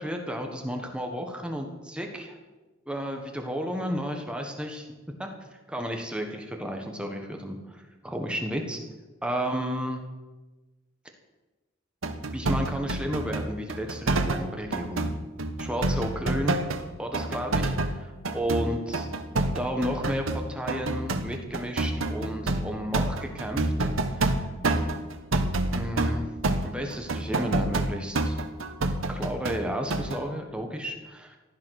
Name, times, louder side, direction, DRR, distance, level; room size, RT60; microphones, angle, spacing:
voice 1, 0.0-2.4 2.9-4.9 5.2-5.3 5.7-8.8 9.2-10.0 12.2-15.1 15.6-16.6 17.0-19.1 19.5-23.7 24.0-24.5 25.7-26.3 26.6-28.4 29.1-31.4, equal, 5° right, 3 dB, 1.4 m, -32 dB
sound 1, 12.0-14.5 14.7-16.8 17.1-29.6 29.9-30.2, right 2 dB, 85° right, 1.2 m, -28 dB
15.0 x 11.0 x 6.5 m, 1.2 s
head